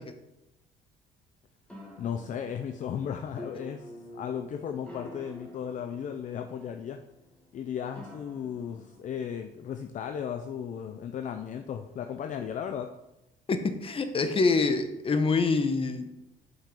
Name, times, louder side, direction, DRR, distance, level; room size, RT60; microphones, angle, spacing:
sound 1, 1.7-9.1, left 1 dB, 5° left, 2.3 m, -48 dB
voice 1, 2.0-7.0 7.5-12.9, left 8 dB, 50° left, 7 dB, 0.6 m, -35 dB
voice 2, 13.5-16.1, left 4 dB, 35° left, 8 dB, 1.0 m, -26 dB
7.4 x 5.7 x 5.3 m, 0.92 s
cardioid pair, 110°, 17 cm